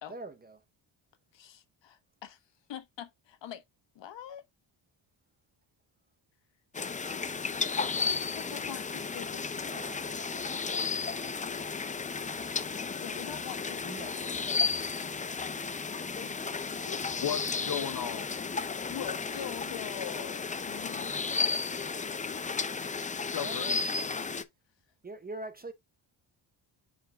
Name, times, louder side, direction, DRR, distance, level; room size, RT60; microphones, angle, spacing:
voice 1, 0.1-0.6 9.7-11.3 13.8-14.2 23.4-23.9 25.0-25.7, right 2 dB, 20° right, 0.7 m, -44 dB
voice 2, 1.3-2.4 2.7-3.6 3.9-4.4 7.7-9.9 13.0-14.5 16.2-16.4 16.9-17.0 18.9-20.4, left 10 dB, 65° left, 1.3 m, -43 dB
sound 1, 6.7-24.4, left 5 dB, 15° left, 0.4 m, -33 dB
voice 3, 17.2-18.3 20.7-21.1 23.3-23.8, left 9 dB, 45° left, 0.7 m, -36 dB
9.1 x 4.5 x 2.3 m
cardioid pair, 145°, 48 cm